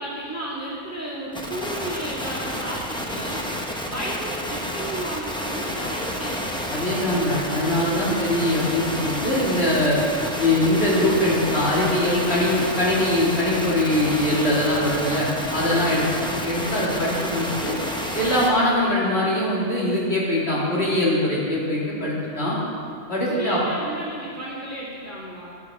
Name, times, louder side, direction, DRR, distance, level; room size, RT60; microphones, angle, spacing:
voice 1, 0.0-3.4 3.9-6.5 15.7-16.1 23.3-25.5, right 1 dB, 10° right, -7 dB, 1.9 m, -33 dB
sound 1, 1.3-18.5, equal, 5° left, 0.6 m, -30 dB
voice 2, 6.7-10.0 10.4-17.7 18.1-22.6 23.1-23.6, left 1 dB, 55° left, -7 dB, 2.5 m, -22 dB
12.5 x 6.4 x 4.8 m, 2.3 s
omnidirectional pair, 1.3 m